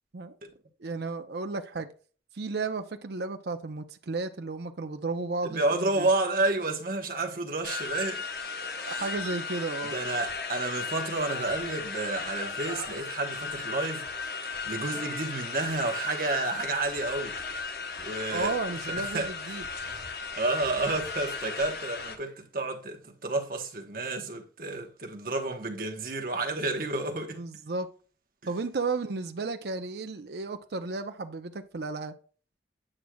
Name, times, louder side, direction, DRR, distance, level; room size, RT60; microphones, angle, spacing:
voice 1, 0.8-1.9 2.3-6.1 8.9-9.9 18.3-19.6 27.4-27.9 28.5-32.1, right 3 dB, 65° right, 0.6 m, -33 dB
voice 2, 5.4-8.3 8.8-9.1 9.9-14.0 14.6-17.4 18.0-18.6 19.0-19.3 20.4-27.4, right 2 dB, 50° right, 1.1 m, -30 dB
sound 1, 7.6-22.2, left 4 dB, 60° left, 0.9 m, -36 dB
8.7 x 6.3 x 2.2 m
head